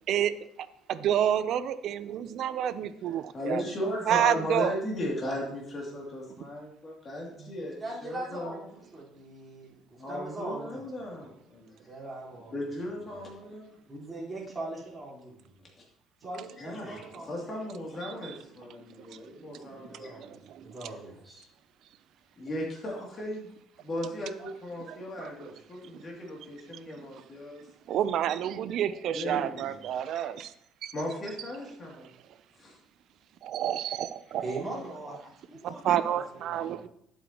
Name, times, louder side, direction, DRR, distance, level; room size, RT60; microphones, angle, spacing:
voice 1, 0.1-3.6 4.1-4.7 18.0-18.4 19.0-19.2 19.5-20.7 24.9-25.3 27.0-27.1 27.9-30.5 30.8-30.9 33.4-34.5 35.6-36.9, right 10 dB, 60° right, 13 dB, 0.5 m, -30 dB
voice 2, 3.3-8.6 10.0-11.8 12.5-13.8 16.6-20.2 22.4-23.5 23.8-27.6 29.1-29.6 29.9-30.3 30.9-32.1 32.6-32.8, left 1 dB, 30° left, -2 dB, 2.7 m, -36 dB
voice 3, 7.7-11.1 11.9-12.5 12.9-13.3 13.9-15.5 16.2-17.3 19.7-21.5 34.4-36.9, right 2 dB, 15° right, -8 dB, 4.2 m, -41 dB
11.0 x 7.9 x 3.0 m, 0.74 s
cardioid pair, 135°, 0 cm